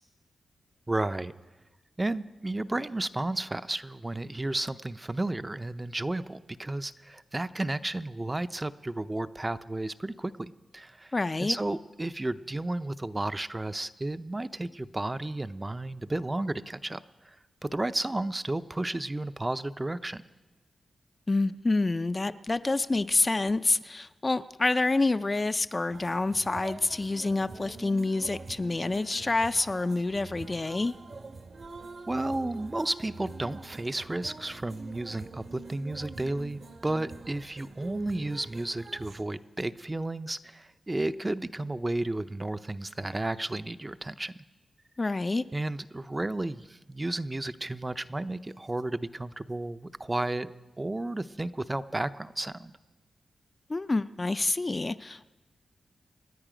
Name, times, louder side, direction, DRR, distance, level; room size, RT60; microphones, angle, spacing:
voice 1, 0.9-1.3 2.0-11.1 11.4-17.4 17.6-20.2 32.1-44.3 45.5-50.5 50.8-52.7, right 2 dB, 20° right, 12 dB, 0.6 m, -32 dB
voice 2, 11.1-11.6 21.3-30.9 45.0-45.4 53.7-55.3, left 2 dB, 30° left, 12 dB, 0.4 m, -27 dB
sound 1, 25.9-39.2, right 3 dB, 55° right, 1.1 m, -45 dB
27.5 x 9.9 x 5.0 m, 1.2 s
cardioid pair, 80°, 0 cm